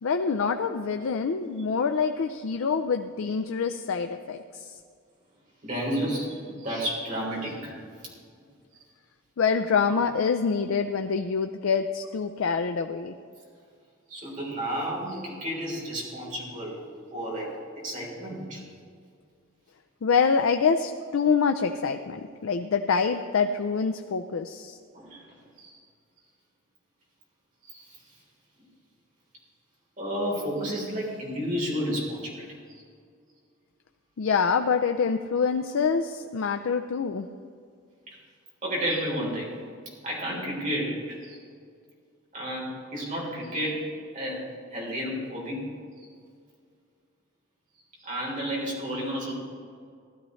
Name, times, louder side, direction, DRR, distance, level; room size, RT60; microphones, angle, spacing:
voice 1, 0.0-4.8 9.4-13.1 20.0-24.8 34.2-37.3, left 5 dB, 80° left, 7 dB, 0.4 m, -26 dB
voice 2, 5.6-8.1 14.1-16.8 17.1-17.5 17.8-18.6 24.9-25.8 27.6-28.0 30.0-32.8 38.1-38.2 38.6-39.6 40.0-41.4 42.3-43.9 44.1-45.6 46.0-46.1 48.0-49.3, equal, 40° right, -4 dB, 3.7 m, -32 dB
16.0 x 12.0 x 3.2 m, 2.2 s
head